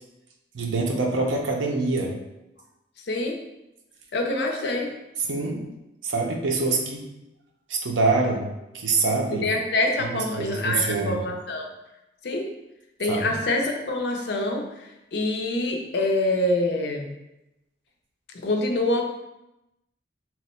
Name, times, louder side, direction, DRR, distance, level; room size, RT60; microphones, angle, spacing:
voice 1, 0.5-2.1 5.2-5.6 6.0-7.1 7.7-8.5 8.7-9.5 10.0-11.3 13.1-13.3, right 3 dB, 85° right, 1 dB, 0.6 m, -25 dB
voice 2, 3.1-3.4 4.1-4.9 9.4-11.7 12.2-12.5 13.0-17.1 18.3-19.0, left 2 dB, 60° left, 2 dB, 0.5 m, -26 dB
2.9 x 2.1 x 4.1 m, 0.93 s
head